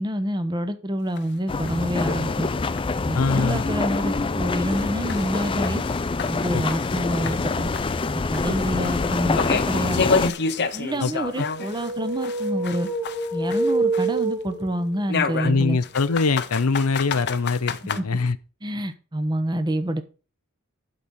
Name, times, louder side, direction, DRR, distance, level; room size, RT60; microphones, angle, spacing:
voice 1, 0.0-2.5 3.1-5.8 6.3-7.7 8.1-10.3 10.7-12.9 13.3-15.8 18.0-18.1 18.6-20.0, right 1 dB, 20° right, 0.9 m, -27 dB
sound 1, 1.2-1.3 1.7-1.8 2.2-2.3 2.8-2.9 3.4-3.5 3.9-4.0 4.5-7.0 7.3-11.9 12.2-14.3 15.1-18.0, left 5 dB, 50° left, 0.8 m, -29 dB
sound 2, 1.5-10.3, left 3 dB, 25° left, 0.4 m, -25 dB
voice 2, 3.1-3.6 6.5-6.6 11.0-11.1 11.4-11.5 15.4-18.4, left 4 dB, 85° left, 0.7 m, -23 dB
sound 3, 11.4-15.0, right 3 dB, 80° right, 4.3 m, -27 dB
11.5 x 4.1 x 6.3 m
head